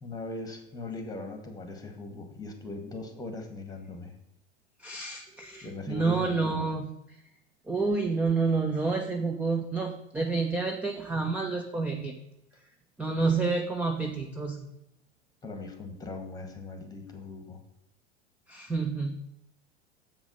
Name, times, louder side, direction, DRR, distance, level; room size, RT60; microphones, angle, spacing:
voice 1, 0.0-4.1 5.6-6.7 13.2-13.3 15.4-17.6, left 2 dB, 10° left, 6 dB, 1.4 m, -40 dB
voice 2, 4.8-6.8 7.7-12.2 13.0-14.7 18.5-19.1, right 4 dB, 5° right, 4 dB, 0.4 m, -29 dB
7.4 x 5.0 x 5.3 m, 0.86 s
figure-of-eight pair, 90°, 35 cm